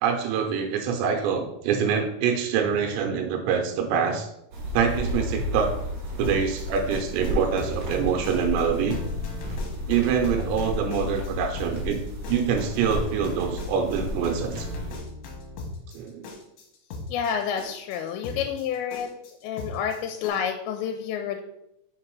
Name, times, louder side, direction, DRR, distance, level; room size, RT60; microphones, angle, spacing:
voice 1, 0.0-4.3 4.7-5.7 6.2-9.0 9.9-12.0 12.3-14.7 15.9-16.2, right 7 dB, 90° right, 4 dB, 2.9 m, -25 dB
sound 1, 4.5-15.0, left 2 dB, 75° right, 1.5 m, -33 dB
sound 2, 6.1-20.3, left 2 dB, 70° left, 2.5 m, -38 dB
voice 2, 17.1-21.4, left 8 dB, 85° left, 5 dB, 2.8 m, -29 dB
6.0 x 3.8 x 4.6 m, 0.81 s
omnidirectional pair, 5.1 m